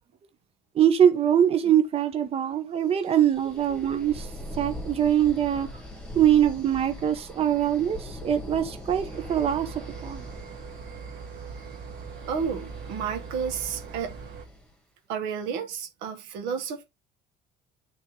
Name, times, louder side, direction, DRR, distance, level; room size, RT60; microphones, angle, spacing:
voice 1, 0.7-4.3 4.6-5.7 6.1-10.2, right 10 dB, 30° right, 0.9 m, -23 dB
sound 1, 3.0-14.7, left 1 dB, 5° left, 2.1 m, -42 dB
sound 2, 9.1-14.4, right 6 dB, 60° right, 2.0 m, -41 dB
voice 2, 12.3-14.2 15.1-16.8, right 6 dB, 85° right, 1.7 m, -31 dB
9.4 x 4.1 x 3.2 m
cardioid pair, 135°, 19 cm